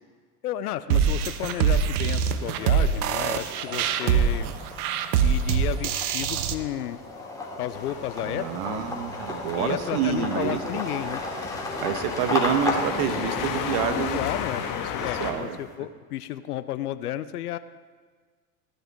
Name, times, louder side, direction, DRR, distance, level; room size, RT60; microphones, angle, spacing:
voice 1, 0.4-4.5 5.2-7.0 7.6-8.8 9.6-11.2 13.9-17.6, left 12 dB, 85° left, 14 dB, 0.6 m, -32 dB
sound 1, 0.9-6.5, right 7 dB, 75° right, 0.8 m, -24 dB
sound 2, 1.1-1.7 2.1-15.6, left 2 dB, 10° left, 2.8 m, -35 dB
sound 3, 7.7-15.3, left 8 dB, 45° left, 1.5 m, -34 dB
voice 2, 8.2-10.6 11.8-14.2 15.0-15.6, right 9 dB, 60° right, 9 dB, 1.3 m, -28 dB
16.5 x 10.0 x 3.6 m, 1.5 s
hypercardioid pair, 85°, 45 cm